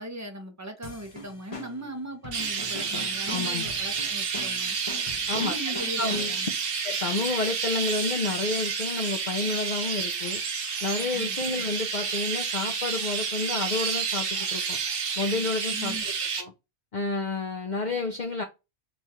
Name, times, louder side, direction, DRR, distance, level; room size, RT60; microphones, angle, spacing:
voice 1, 0.0-4.8 5.3-6.5 11.1-11.4 15.7-16.0, right 1 dB, 20° right, 0.4 m, -39 dB
sound 1, 0.8-6.6, left 3 dB, 30° left, 0.8 m, -42 dB
Chirp tweet, 2.3-16.4, right 5 dB, 55° right, 0.8 m, -30 dB
voice 2, 3.3-3.7 5.3-6.4 6.8-10.4 10.8-14.8 15.2-16.1 16.4-16.5 16.9-18.4, left 3 dB, 55° left, 0.5 m, -30 dB
3.1 x 2.4 x 4.1 m
omnidirectional pair, 1.2 m